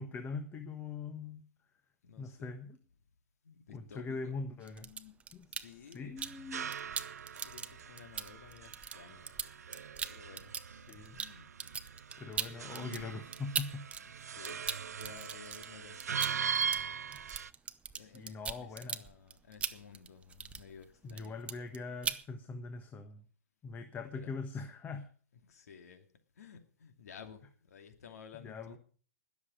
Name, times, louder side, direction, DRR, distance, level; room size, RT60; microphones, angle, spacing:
voice 1, 0.0-1.4 2.2-2.8 3.7-4.9 5.3-6.7 10.7-11.2 12.2-13.8 18.0-19.1 21.0-23.2 23.6-25.1 28.4-28.8, left 4 dB, 20° left, 7 dB, 1.3 m, -42 dB
voice 2, 2.0-2.5 3.4-5.2 5.5-6.3 7.4-9.4 9.7-10.8 11.1-11.5 12.1-13.3 14.0-17.1 17.9-21.8 22.4-22.5 24.1-24.3 25.4-26.1 26.4-28.8, left 6 dB, 75° left, 6 dB, 2.6 m, -55 dB
sound 1, 4.6-6.4 6.7-14.0 14.3-20.8 21.1-21.8 22.0-22.2, right 6 dB, 15° right, 0.7 m, -40 dB
sound 2, 6.2-17.5, right 7 dB, 90° right, 0.6 m, -40 dB
20.0 x 7.2 x 6.3 m, 0.43 s
hypercardioid pair, 125°, 8 cm